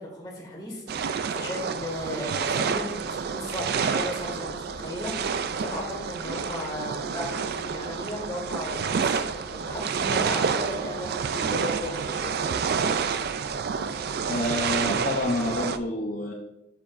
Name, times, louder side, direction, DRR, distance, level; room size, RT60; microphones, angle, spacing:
voice 1, 0.0-9.2 9.5-12.3, left 1 dB, 20° left, -2 dB, 2.0 m, -36 dB
sound 1, 0.9-15.8, right 6 dB, 55° right, 0.4 m, -29 dB
sound 2, 1.2-15.8, right 3 dB, 35° right, 2.2 m, -44 dB
voice 2, 14.3-16.3, left 2 dB, 45° left, -1 dB, 0.7 m, -28 dB
7.2 x 7.1 x 2.6 m, 0.89 s
head